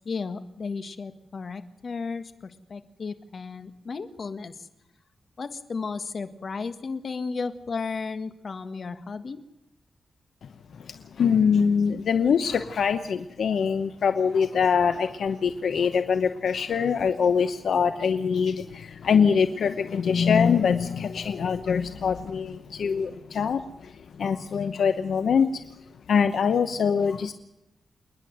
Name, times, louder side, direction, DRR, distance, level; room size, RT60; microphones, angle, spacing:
voice 1, 0.0-4.7 5.4-9.4, left 4 dB, 55° left, 10 dB, 1.7 m, -34 dB
voice 2, 10.8-25.6 26.1-27.3, left 6 dB, 80° left, 10 dB, 1.0 m, -24 dB
28.0 x 10.5 x 9.2 m, 0.90 s
wide cardioid pair, 95°, 0 cm